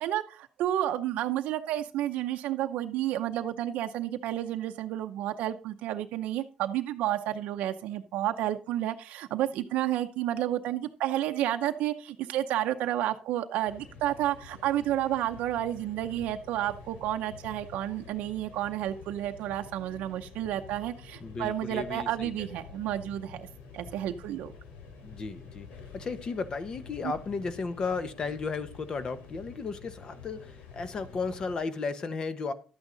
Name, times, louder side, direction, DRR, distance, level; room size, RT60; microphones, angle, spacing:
voice 1, 0.0-23.5 23.7-24.5 27.0-27.1, right 12 dB, 80° right, 0.7 m, -31 dB
sound 1, 13.6-31.5, left 5 dB, 85° left, 3.0 m, -48 dB
voice 2, 21.2-22.6 25.0-25.7 25.9-32.5, left 4 dB, 35° left, 1.0 m, -34 dB
12.0 x 8.9 x 3.9 m
cardioid pair, 155°, 2 cm